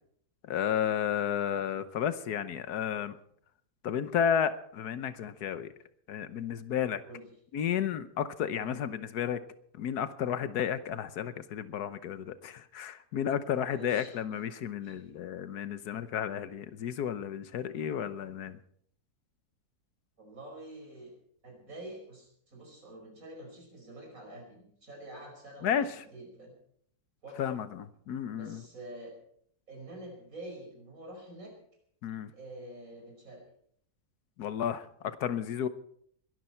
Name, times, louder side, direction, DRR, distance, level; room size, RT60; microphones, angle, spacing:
voice 1, 0.4-3.1 3.8-5.7 6.1-7.0 7.5-9.4 9.7-18.6 25.6-26.0 27.4-28.6 32.0-32.3 34.4-35.7, left 9 dB, 85° left, 13 dB, 1.5 m, -32 dB
voice 2, 13.6-14.1 14.8-15.1 20.2-21.1 21.4-26.5 27.2-27.6 28.4-29.1 29.7-31.5 32.3-33.4, right 1 dB, 60° right, 2 dB, 5.6 m, -47 dB
21.5 x 13.0 x 4.4 m, 0.65 s
omnidirectional pair, 1.6 m